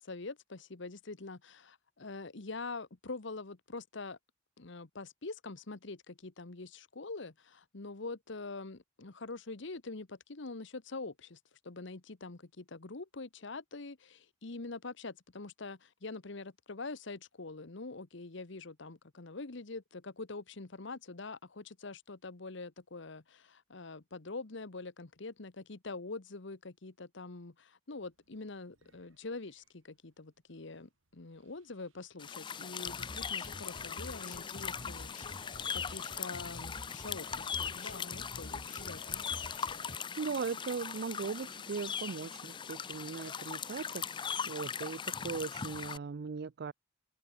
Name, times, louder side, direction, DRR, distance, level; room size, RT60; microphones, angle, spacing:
voice 1, 0.0-4.2 4.6-11.4 11.6-39.2, left 3 dB, 65° left, 1.2 m, -45 dB
Sink (filling or washing), 27.9-41.6, right 12 dB, 90° right, 4.9 m, -67 dB
sound 1, 32.2-46.0, left 7 dB, 25° left, 0.4 m, -40 dB
sound 2, 32.9-40.0, left 1 dB, 40° left, 2.6 m, -48 dB
voice 2, 40.2-46.7, right 5 dB, 55° right, 0.4 m, -39 dB
open air
head